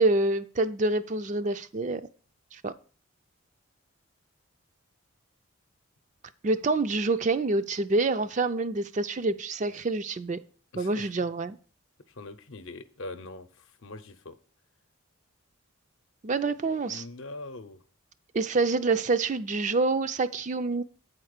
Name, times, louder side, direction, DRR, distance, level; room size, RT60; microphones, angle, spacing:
voice 1, 0.0-2.0 2.5-2.7 6.4-10.4 10.8-11.6 16.2-17.0 18.3-20.8, right 3 dB, 35° right, 11 dB, 0.4 m, -27 dB
voice 2, 10.7-11.1 12.1-14.4 16.9-17.8, left 2 dB, 65° left, 10 dB, 0.7 m, -42 dB
8.5 x 4.4 x 6.5 m, 0.40 s
head